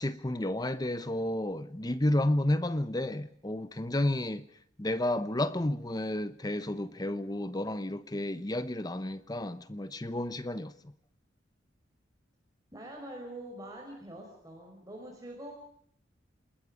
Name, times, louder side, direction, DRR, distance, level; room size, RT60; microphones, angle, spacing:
voice 1, 0.0-4.5 4.8-10.7, left 1 dB, 20° left, 0.9 m, -31 dB
voice 2, 12.7-15.5, right 1 dB, 20° right, 5.6 m, -44 dB
28.5 x 20.5 x 5.2 m
head